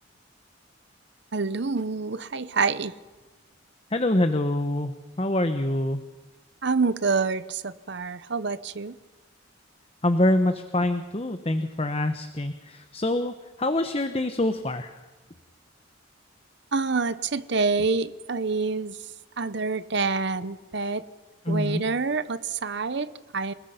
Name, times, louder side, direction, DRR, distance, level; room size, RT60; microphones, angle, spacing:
voice 1, 1.3-2.9 6.6-9.0 16.7-19.0 19.4-21.0 21.5-23.5, right 4 dB, 55° right, 14 dB, 0.9 m, -27 dB
voice 2, 3.9-6.0 10.0-15.0 21.5-21.8, left 1 dB, 30° left, 9 dB, 1.0 m, -25 dB
28.5 x 19.5 x 5.8 m, 1.2 s
head